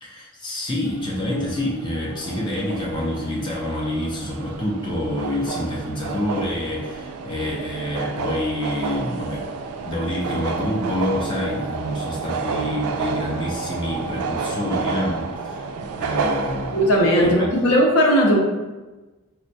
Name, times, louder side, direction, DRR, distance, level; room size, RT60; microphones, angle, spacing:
voice 1, 0.0-9.5 9.9-15.6 15.9-16.8 17.1-17.5, left 1 dB, 20° left, -2 dB, 0.4 m, -27 dB
sound 1, 0.8-17.4, right 4 dB, 80° right, 0.3 m, -30 dB
voice 2, 16.7-18.4, equal, 75° left, 0 dB, 0.6 m, -17 dB
4.3 x 2.1 x 2.6 m, 1.2 s
head